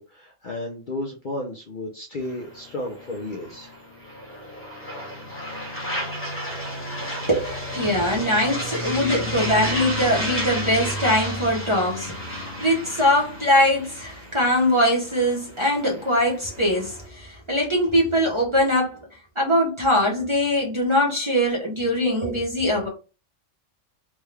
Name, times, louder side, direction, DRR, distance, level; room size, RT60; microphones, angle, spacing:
voice 1, 0.0-3.7, left 1 dB, 50° left, 0.6 m, -33 dB
sound 1, 2.2-17.1, equal, 10° left, 1.0 m, -32 dB
voice 2, 7.3-19.0 19.4-22.9, equal, 25° right, 0.7 m, -22 dB
3.6 x 2.2 x 3.2 m
omnidirectional pair, 1.3 m